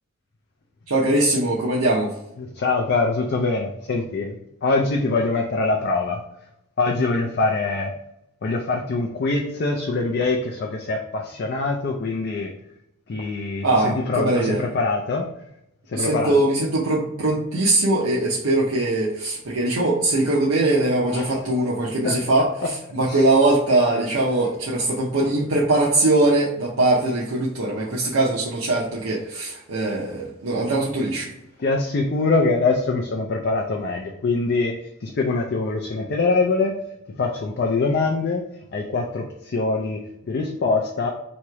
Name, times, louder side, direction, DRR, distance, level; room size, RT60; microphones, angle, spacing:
voice 1, 0.9-2.1 13.6-14.6 15.9-31.3, right 2 dB, 75° right, -5 dB, 0.7 m, -21 dB
voice 2, 2.5-6.2 6.8-7.9 8.4-12.5 13.1-15.3 15.9-16.3 21.1-21.5 21.9-22.2 23.1-23.2 31.6-34.7 35.0-36.8 37.1-38.4 38.7-41.1, left 3 dB, 45° left, 1 dB, 0.4 m, -23 dB
3.1 x 2.9 x 4.5 m, 0.82 s
head